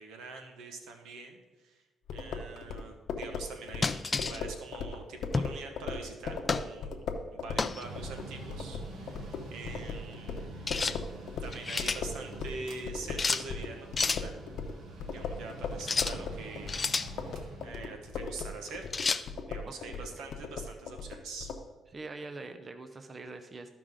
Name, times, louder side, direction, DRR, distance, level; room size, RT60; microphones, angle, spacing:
voice 1, 0.0-1.8 2.1-7.0 7.3-10.5 11.0-11.2 11.4-14.3 15.1-17.3 17.6-18.9 19.5-21.5, right 3 dB, 90° right, 4 dB, 1.1 m, -44 dB
sound 1, 2.1-12.6 12.9-21.6, left 5 dB, 70° left, 0.8 m, -38 dB
sound 2, 3.8-4.4 5.3-5.6 6.5-6.7 7.6-7.8 10.7-11.0 11.4-12.0 13.2-13.5 14.0-14.2 15.8-16.2 16.7-17.1 18.9-19.2, left 4 dB, 30° left, 0.4 m, -30 dB
Mechanical fan, 7.8-21.2, right 2 dB, 70° right, 1.3 m, -47 dB
voice 2, 19.7-20.3 21.9-23.8, right 3 dB, 35° right, 8 dB, 0.6 m, -44 dB
13.5 x 5.0 x 3.7 m, 1.2 s
cardioid pair, 90°, 0 cm